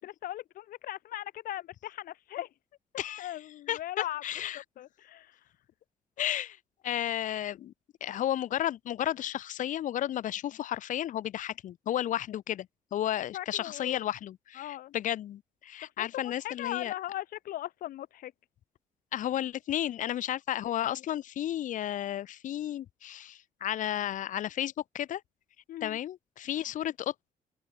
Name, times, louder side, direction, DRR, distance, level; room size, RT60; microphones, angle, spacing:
voice 1, 0.0-2.5 3.2-4.2 4.8-5.4 13.3-14.0 14.6-14.9 16.0-16.1 16.4-18.3 25.7-26.0, left 13 dB, 85° left, 4.2 m, -38 dB
voice 2, 3.0-4.6 6.2-6.6 6.8-7.7 8.0-12.7 12.9-16.9 19.1-25.2 25.8-27.1, left 11 dB, 65° left, 1.4 m, -33 dB
open air
cardioid pair, 160°, 14 cm